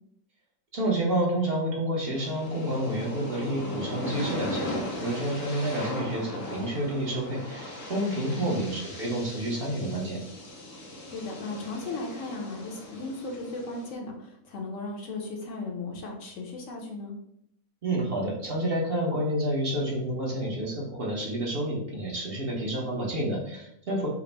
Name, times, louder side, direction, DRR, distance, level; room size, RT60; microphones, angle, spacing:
voice 1, 0.7-10.2 17.8-24.1, right 1 dB, 45° right, -3 dB, 0.9 m, -29 dB
sound 1, 2.1-13.9, left 1 dB, 90° left, 1.3 m, -38 dB
voice 2, 11.1-17.2, left 3 dB, 65° left, 1 dB, 1.1 m, -36 dB
4.9 x 2.0 x 3.3 m, 0.73 s
omnidirectional pair, 1.5 m